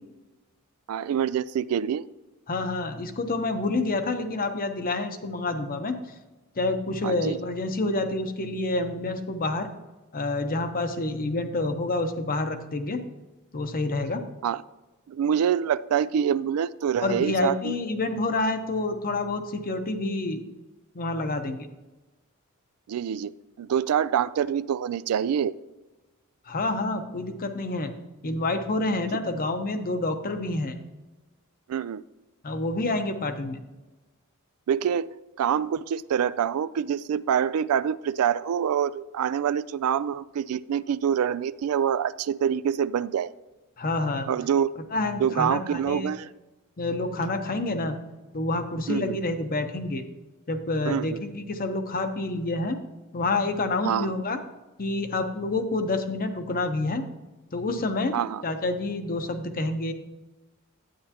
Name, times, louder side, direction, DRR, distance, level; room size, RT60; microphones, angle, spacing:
voice 1, 0.9-2.1 7.0-7.4 14.4-14.6 15.1-17.8 22.9-23.3 23.6-25.5 31.7-32.0 34.7-35.1 35.4-43.3 44.3-44.7 45.2-46.3 48.9-49.2 50.8-51.2 53.8-54.1 58.1-58.4, right 8 dB, 85° right, 17 dB, 0.3 m, -26 dB
voice 2, 2.5-6.0 6.6-9.7 10.1-13.0 13.5-14.2 17.0-20.4 20.9-21.7 26.5-27.9 28.2-30.8 32.4-33.6 43.8-44.3 44.9-46.2 46.8-48.0 48.3-50.0 50.5-52.8 53.1-54.4 54.8-57.0 57.5-58.2 58.4-59.9, left 2 dB, 40° left, 8 dB, 0.8 m, -28 dB
10.0 x 8.9 x 2.9 m, 1.1 s
head